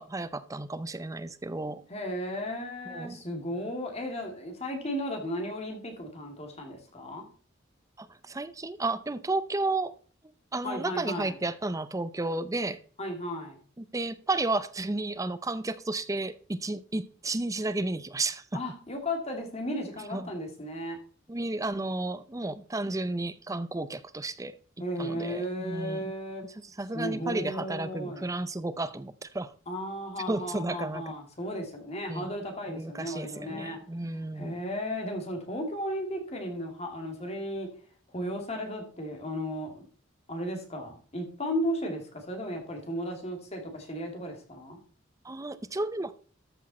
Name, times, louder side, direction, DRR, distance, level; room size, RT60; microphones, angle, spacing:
voice 1, 0.0-1.8 2.9-3.2 8.0-9.9 10.5-12.8 13.8-18.4 20.1-20.3 21.3-24.5 25.0-26.1 26.8-29.5 30.3-31.0 32.1-32.3 32.7-34.6 45.2-46.1, right 2 dB, 15° right, 0.6 m, -32 dB
voice 2, 1.9-7.3 10.6-11.3 13.0-13.6 18.5-21.0 24.8-26.4 26.9-28.3 29.7-33.8 34.3-37.7 38.1-39.7 40.3-44.8, equal, 35° left, 2.6 m, -35 dB
13.5 x 6.4 x 4.2 m
head